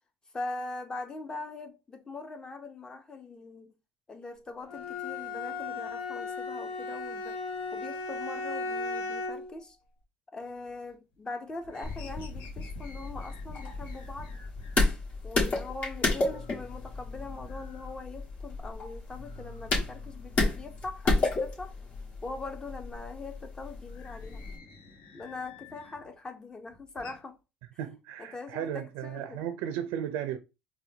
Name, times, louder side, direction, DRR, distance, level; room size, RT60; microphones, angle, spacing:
voice 1, 0.3-3.7 4.1-7.4 7.7-9.8 10.3-14.4 15.2-21.7 22.2-24.5 25.1-27.4 28.2-29.5, left 3 dB, 20° left, 0.7 m, -42 dB
Bowed string instrument, 4.7-9.5, left 3 dB, 90° left, 1.1 m, -36 dB
sound 1, 10.4-11.1 11.4-14.9 15.3-15.4 15.7-15.8 16.0-18.5 18.8-21.4 21.7-26.1 26.5-27.2, left 2 dB, 70° left, 1.2 m, -50 dB
sound 2, 11.8-24.6, left 2 dB, 50° left, 1.7 m, -32 dB
voice 2, 27.8-30.4, right 10 dB, 90° right, 0.4 m, -35 dB
4.2 x 2.2 x 2.7 m
cardioid pair, 120°, 4 cm